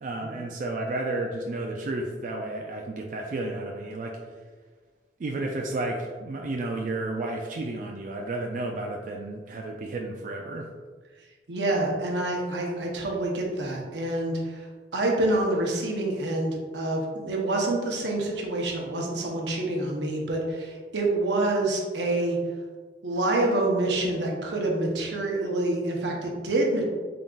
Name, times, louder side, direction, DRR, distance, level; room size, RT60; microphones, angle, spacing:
voice 1, 0.0-4.2 5.2-10.7, right 2 dB, 45° right, 0 dB, 0.3 m, -32 dB
voice 2, 11.5-14.7 14.9-22.4 23.0-26.9, right 2 dB, 80° right, 0 dB, 0.8 m, -27 dB
3.8 x 3.7 x 2.4 m, 1.5 s
head